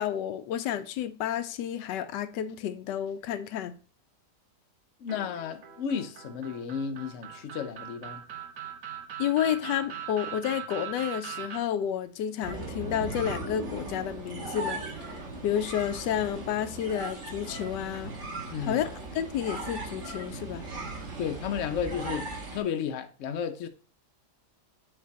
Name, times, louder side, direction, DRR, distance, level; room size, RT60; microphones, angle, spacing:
voice 1, 0.0-3.8 9.2-15.1 15.4-18.1 18.7-18.9 19.2-20.7, left 10 dB, 90° left, 1.2 m, -30 dB
voice 2, 5.0-8.2 18.5-18.9 21.2-23.7, left 7 dB, 60° left, 0.9 m, -33 dB
sound 1, 5.1-11.6, right 9 dB, 75° right, 1.6 m, -40 dB
sound 2, 12.4-22.6, right 2 dB, 45° right, 1.8 m, -38 dB
6.8 x 3.6 x 4.1 m
omnidirectional pair, 1.8 m